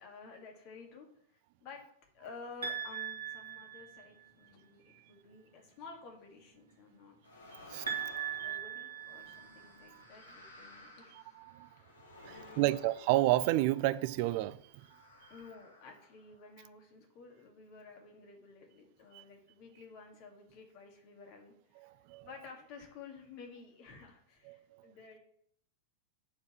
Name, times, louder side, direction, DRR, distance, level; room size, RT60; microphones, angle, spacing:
voice 1, 0.0-1.8 2.1-7.2 7.8-8.0 8.4-11.3 12.2-12.8 15.3-21.9 22.2-25.2, left 4 dB, 45° left, 2.2 m, -52 dB
sound 1, 2.6-4.3 7.9-9.9, right 8 dB, 70° right, 1.6 m, -39 dB
sound 2, 7.2-14.0 14.7-16.5, left 2 dB, 75° left, 2.1 m, -55 dB
voice 2, 11.1-11.7 12.2-14.9 19.1-19.2 21.8-22.3 24.5-24.9, right 16 dB, 45° right, 0.3 m, -31 dB
8.7 x 4.7 x 5.8 m
figure-of-eight pair, 90°, 0 cm